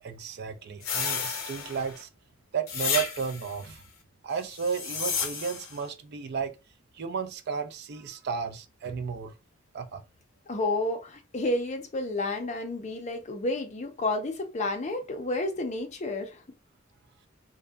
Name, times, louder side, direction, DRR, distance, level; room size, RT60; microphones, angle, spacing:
voice 1, 0.0-2.1 2.5-3.8 4.2-6.6 6.9-9.3 9.7-10.0, right 6 dB, 55° right, 0.4 m, -33 dB
sound 1, 0.8-2.0 2.7-3.5 4.5-5.8, left 6 dB, 90° left, 0.6 m, -32 dB
voice 2, 10.5-16.4, left 2 dB, 35° left, 0.5 m, -30 dB
2.6 x 2.1 x 2.2 m
head